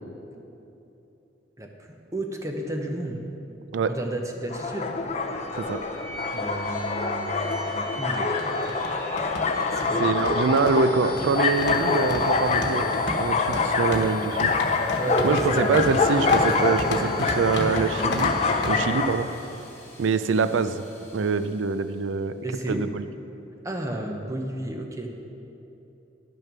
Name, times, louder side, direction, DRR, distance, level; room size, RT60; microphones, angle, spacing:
voice 1, 1.6-3.2 3.9-4.9 6.3-8.3 9.7-10.1 15.0-15.9 22.4-22.9 23.6-25.1, right 1 dB, 15° right, 2 dB, 0.8 m, -32 dB
sound 1, 4.5-19.1, left 4 dB, 35° left, 0.5 m, -25 dB
sound 2, 5.2-21.9, left 1 dB, 15° left, 1.3 m, -43 dB
sound 3, 6.7-6.8 7.0-7.1 8.0-18.7, left 1 dB, 65° left, 1.1 m, -32 dB
voice 2, 10.0-12.9 13.2-14.5 15.2-18.3 18.7-19.3 20.0-20.8 21.1-22.4 22.7-23.1, right 4 dB, 85° right, 12 dB, 0.4 m, -24 dB
10.5 x 6.5 x 6.0 m, 2.9 s
head